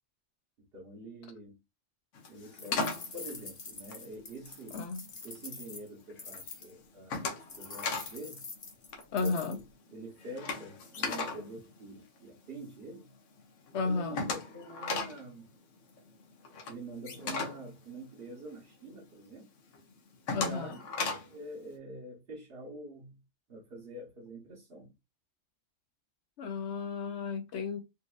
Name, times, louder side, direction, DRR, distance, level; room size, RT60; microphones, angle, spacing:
voice 1, 0.6-1.6 2.3-4.8 5.2-8.5 9.2-9.6 9.9-13.1 13.8-15.5 16.7-19.5 20.4-20.8 21.3-23.2 23.5-24.9, right 1 dB, 55° right, 1.2 m, -46 dB
sound 1, 2.1-4.7 5.1-5.7 6.0-6.4 6.7-8.2 8.4-8.6 8.8-12.6 13.0-13.1 13.4-13.5 13.7-18.7 19.1-19.2 19.7-21.4, left 4 dB, 85° left, 1.2 m, -37 dB
sound 2, 2.6-6.7 7.5-9.6, left 4 dB, 35° left, 0.5 m, -46 dB
voice 2, 4.7-5.0 9.1-9.6 13.7-14.2 20.3-20.8 26.4-27.8, left 4 dB, 70° left, 0.9 m, -33 dB
3.9 x 2.5 x 2.4 m
omnidirectional pair, 1.2 m